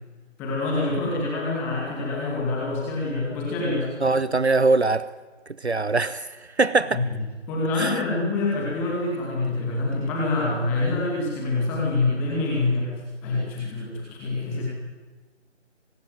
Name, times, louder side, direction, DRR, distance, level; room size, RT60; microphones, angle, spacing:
voice 1, 0.4-3.9 6.9-7.0 7.5-12.9 13.2-14.6, left 2 dB, 5° left, -4 dB, 2.3 m, -26 dB
voice 2, 4.0-5.1 5.6-7.0 7.8-7.9, right 3 dB, 60° right, 16 dB, 1.1 m, -22 dB
24.5 x 20.5 x 9.3 m, 1.3 s
figure-of-eight pair, 160°, 36 cm